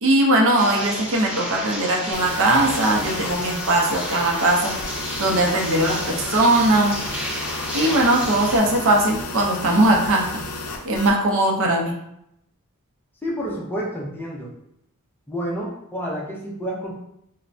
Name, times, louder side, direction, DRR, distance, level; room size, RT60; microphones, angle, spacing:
voice 1, 0.0-4.7 5.2-7.0 7.7-10.3 10.8-12.0, right 1 dB, 60° right, 0 dB, 0.5 m, -19 dB
sound 1, 0.6-8.6, equal, 10° right, 1.4 m, -32 dB
sound 2, 2.1-11.1, left 2 dB, 75° left, 0.4 m, -33 dB
voice 2, 13.2-14.5 15.3-16.9, equal, 10° left, -4 dB, 0.5 m, -29 dB
3.2 x 2.1 x 2.5 m, 0.78 s
head